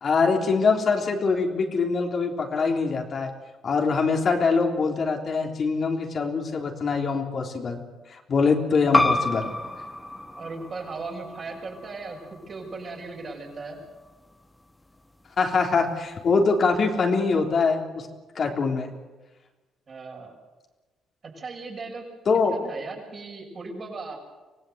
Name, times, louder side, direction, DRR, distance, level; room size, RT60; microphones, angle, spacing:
voice 1, 0.0-3.3 3.6-7.8 8.1-9.5 15.4-18.1 18.4-18.9 22.3-22.7, left 4 dB, 50° left, 2 dB, 3.5 m, -23 dB
sound 1, 8.9-14.1, left 1 dB, 15° left, 1.6 m, -29 dB
voice 2, 10.3-13.8 19.9-20.3 21.3-22.1 22.5-24.2, right 3 dB, 45° right, 1 dB, 6.7 m, -37 dB
25.0 x 17.5 x 8.0 m, 1.2 s
cardioid pair, 90°, 0 cm